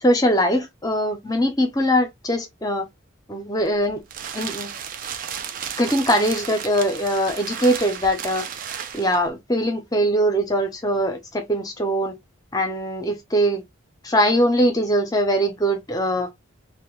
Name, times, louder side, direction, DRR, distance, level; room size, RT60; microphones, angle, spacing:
voice 1, 0.0-2.9 3.3-4.0 4.3-4.7 5.8-8.4 8.9-12.2 12.5-13.6 14.0-16.3, equal, 20° left, 0.6 m, -21 dB
sound 1, 3.6-9.3, right 8 dB, 40° right, 0.3 m, -33 dB
2.7 x 2.2 x 3.0 m
head